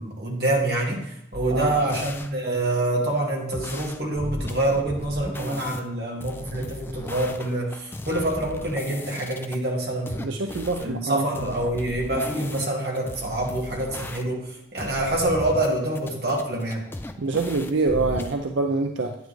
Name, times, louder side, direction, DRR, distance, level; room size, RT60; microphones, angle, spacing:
voice 1, 0.0-10.4 10.8-16.9, right 1 dB, 55° right, -1 dB, 1.9 m, -26 dB
sound 1, 1.3-2.3 3.5-5.8 6.2-9.5 10.1-10.9 11.3-14.5 14.8-15.7 15.9-18.3, left 1 dB, 10° left, 0.3 m, -36 dB
voice 2, 10.2-11.3 17.2-19.1, right 3 dB, 75° right, 5 dB, 0.6 m, -25 dB
9.3 x 9.2 x 3.2 m, 0.80 s
head